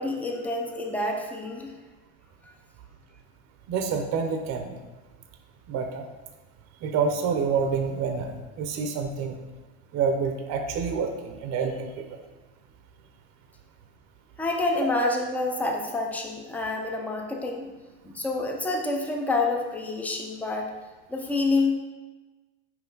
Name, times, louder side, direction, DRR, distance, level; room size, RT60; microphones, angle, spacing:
voice 1, 0.0-1.7 14.4-17.7 18.0-20.7 21.1-21.7, left 2 dB, 5° left, 1 dB, 0.3 m, -28 dB
voice 2, 3.7-4.8 5.7-6.0 6.8-9.4 9.9-12.0, right 5 dB, 40° right, 5 dB, 0.6 m, -27 dB
5.8 x 4.8 x 3.8 m, 1.2 s
supercardioid pair, 140°, 43 cm